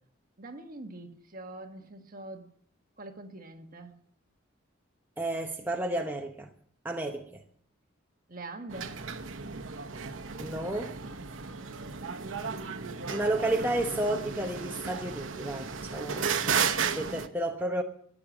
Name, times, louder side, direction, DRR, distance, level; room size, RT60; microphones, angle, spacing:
voice 1, 0.4-2.5 3.0-4.0 8.3-9.0 12.5-13.4, right 2 dB, 40° right, 1.6 m, -44 dB
voice 2, 5.2-6.5 6.8-7.4 10.4-10.9 13.1-16.3 16.9-17.8, right 1 dB, 10° right, 0.9 m, -31 dB
sound 1, 8.7-17.3, right 6 dB, 75° right, 1.0 m, -34 dB
14.0 x 10.5 x 7.1 m
head